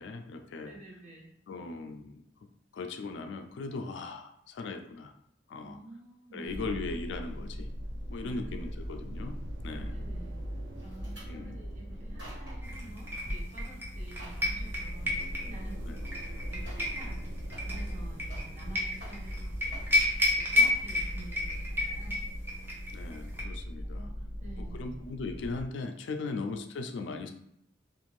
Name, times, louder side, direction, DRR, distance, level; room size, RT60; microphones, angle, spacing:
voice 1, 0.0-0.7 1.5-5.1 5.5-5.8 6.3-7.7 8.1-9.4 9.6-9.9 11.3-11.6 15.8-15.9 22.9-24.1 24.6-27.3, left 3 dB, 75° left, 6 dB, 0.3 m, -38 dB
voice 2, 0.6-1.3 5.6-6.8 8.3-8.5 9.7-10.4 10.8-16.2 16.5-17.4 17.7-19.8 20.3-22.2 23.8-24.9, right 2 dB, 40° right, -3 dB, 0.8 m, -50 dB
sound 1, 6.4-25.6, equal, 85° right, 0.5 m, -40 dB
sound 2, 10.8-11.3 11.9-12.7 13.2-13.5 13.9-14.5 15.8-15.9 16.6-17.0 17.3-18.7 18.9-19.4 19.7-20.2 20.6-20.9 21.3-21.5 21.9-22.0, equal, 65° right, 1.5 m, -51 dB
sound 3, 12.6-23.4, left 2 dB, 10° right, 0.5 m, -32 dB
2.5 x 2.5 x 3.1 m, 0.73 s
head